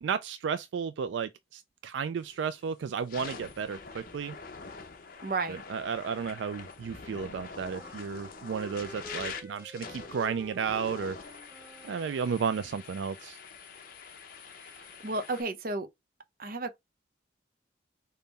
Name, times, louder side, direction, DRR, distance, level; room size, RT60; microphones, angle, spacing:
voice 1, 0.0-4.4 5.5-11.2 11.8-13.4, right 6 dB, 75° right, 0.3 m, -33 dB
sound 1, 2.2-2.5 2.9-15.4, left 5 dB, 50° left, 0.9 m, -45 dB
voice 2, 5.2-5.6 14.6-15.9 16.4-16.8, right 3 dB, 50° right, 0.7 m, -33 dB
Wind instrument woodwind instrument, 7.7-12.4, equal, 15° right, 1.1 m, -49 dB
5.3 x 2.2 x 4.1 m
head